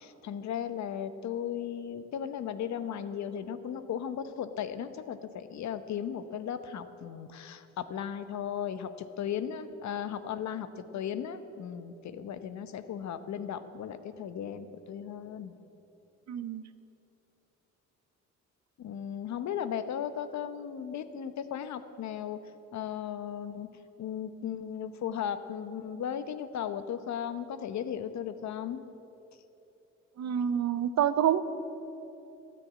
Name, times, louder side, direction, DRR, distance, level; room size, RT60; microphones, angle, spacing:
voice 1, 0.0-15.5 18.8-22.4 22.7-23.7 24.0-28.8, left 8 dB, 65° left, 11 dB, 1.0 m, -36 dB
voice 2, 16.3-16.6 30.2-31.4, right 9 dB, 65° right, 13 dB, 0.8 m, -27 dB
14.0 x 10.0 x 8.8 m, 3.0 s
cardioid pair, 90°, 30 cm